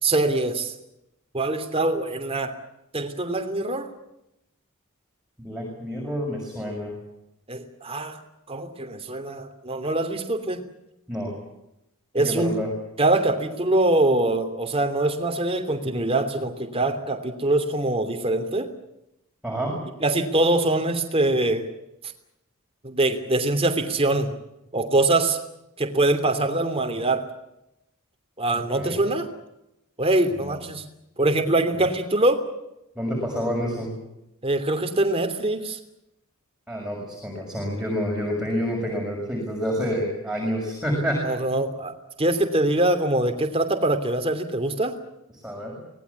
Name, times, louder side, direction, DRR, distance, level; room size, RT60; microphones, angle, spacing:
voice 1, 0.0-0.7 1.3-2.5 2.9-3.9 7.5-8.2 8.5-10.6 12.1-12.5 13.0-18.7 20.0-21.7 22.8-24.3 24.7-25.4 25.8-27.3 28.4-29.3 30.0-30.8 31.2-32.4 34.4-35.8 41.2-41.9 42.2-44.9, right 2 dB, 25° right, 6 dB, 2.9 m, -23 dB
voice 2, 5.4-6.9 11.1-11.3 12.2-12.7 19.4-19.8 28.8-29.1 30.3-30.6 32.9-33.9 36.7-41.2 45.4-45.8, equal, 5° right, -2 dB, 6.4 m, -28 dB
25.0 x 19.5 x 8.4 m, 0.87 s
head